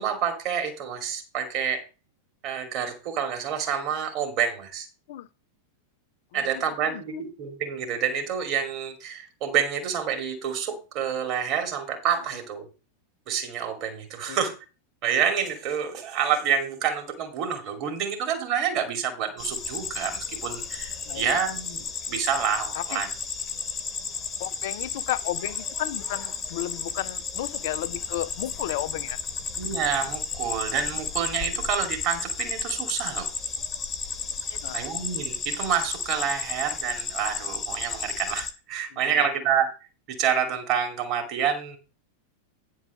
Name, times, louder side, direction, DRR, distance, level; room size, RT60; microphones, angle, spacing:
voice 1, 0.0-1.8 2.4-4.9 6.3-12.7 13.3-14.6 15.0-23.1 29.6-33.3 34.7-39.7 40.1-41.8, right 7 dB, 40° right, 2.6 m, -28 dB
voice 2, 6.3-7.2 14.3-14.4 21.1-21.4 22.7-23.0 24.4-29.2 34.5-34.8 38.9-39.2, left 14 dB, 55° left, 0.5 m, -33 dB
sound 1, 19.4-38.5, left 5 dB, 20° left, 1.3 m, -33 dB
10.0 x 4.7 x 6.1 m
figure-of-eight pair, 90°, 0 cm